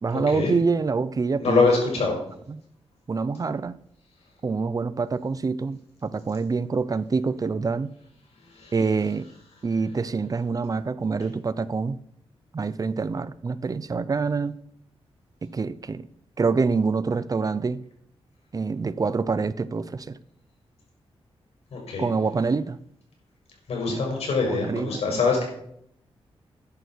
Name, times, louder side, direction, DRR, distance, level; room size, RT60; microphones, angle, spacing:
voice 1, 0.0-1.7 2.5-2.6 3.1-3.8 4.4-7.9 8.7-9.3 9.6-12.0 12.5-14.6 15.4-16.1 16.4-17.8 18.5-20.2 22.0-22.8 23.9-24.0 24.5-25.2, right 4 dB, 35° right, 16 dB, 0.6 m, -26 dB
voice 2, 1.4-2.2 8.5-8.7 21.7-22.0 23.7-25.4, left 4 dB, 85° left, -1 dB, 6.2 m, -24 dB
14.0 x 10.5 x 4.7 m, 0.73 s
wide cardioid pair, 105°, 10 cm